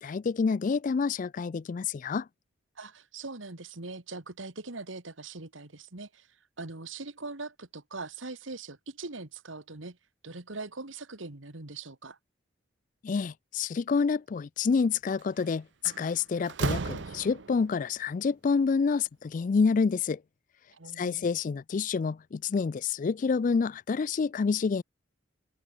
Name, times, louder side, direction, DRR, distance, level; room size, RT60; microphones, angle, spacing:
voice 1, 0.0-2.3 13.0-20.2 21.0-24.8, left 5 dB, 40° left, 0.3 m, -28 dB
voice 2, 2.8-6.3 6.6-10.0 10.2-12.2 20.7-21.3, right 3 dB, 85° right, 2.2 m, -41 dB
Slam, 15.2-15.4 15.9-17.7, right 4 dB, 65° right, 0.7 m, -34 dB
open air
head